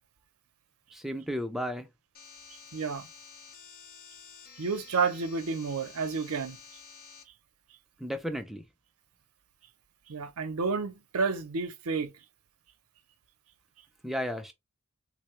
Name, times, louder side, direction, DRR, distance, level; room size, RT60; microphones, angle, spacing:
voice 1, 0.9-1.9 8.0-8.6 14.0-14.5, equal, ahead, 0.4 m, -33 dB
sound 1, 2.1-7.2, left 6 dB, 40° left, 0.7 m, -51 dB
voice 2, 2.7-3.1 4.6-6.6 10.1-12.1, right 4 dB, 85° right, 0.6 m, -30 dB
3.6 x 2.1 x 3.0 m
head